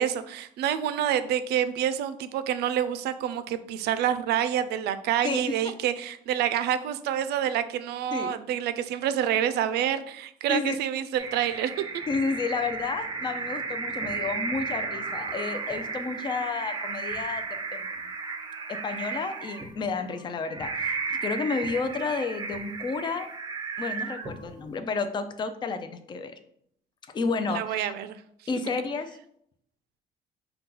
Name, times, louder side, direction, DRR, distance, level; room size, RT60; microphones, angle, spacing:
voice 1, 0.0-11.7 27.5-28.2, right 10 dB, 75° right, 12 dB, 0.4 m, -27 dB
voice 2, 5.2-5.5 8.1-8.3 10.5-10.8 12.1-17.4 17.7-17.8 18.7-23.3 23.8-26.3 27.1-27.8 28.5-29.1, left 4 dB, 25° left, 9 dB, 0.4 m, -31 dB
sound 1, 11.2-24.7, right 4 dB, 25° right, 0.5 m, -34 dB
5.4 x 2.3 x 3.7 m, 0.70 s
cardioid pair, 110°, 17 cm